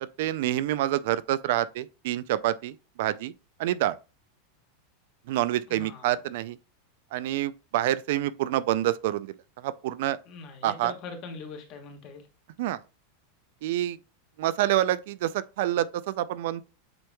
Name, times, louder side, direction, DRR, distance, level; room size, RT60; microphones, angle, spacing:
voice 1, 0.0-3.3 3.6-4.0 5.3-6.6 7.1-10.2 10.6-10.9 12.6-12.8 13.6-14.0 14.4-16.6, right 13 dB, 65° right, 0.3 m, -27 dB
voice 2, 5.7-6.2 10.3-12.3, left 4 dB, 40° left, 1.4 m, -42 dB
7.7 x 3.0 x 2.2 m
supercardioid pair, 145°, 0 cm